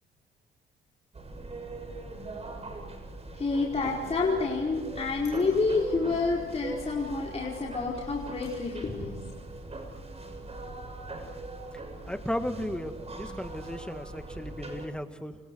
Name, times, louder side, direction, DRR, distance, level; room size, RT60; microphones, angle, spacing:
sound 1, 1.1-14.9, right 2 dB, 30° right, 7.1 m, -41 dB
voice 1, 3.3-9.2, left 3 dB, 30° left, -3 dB, 4.8 m, -28 dB
voice 2, 12.1-15.4, left 1 dB, 5° left, 7 dB, 2.1 m, -35 dB
29.5 x 28.5 x 4.8 m, 1.3 s
cardioid pair, 90°, 20 cm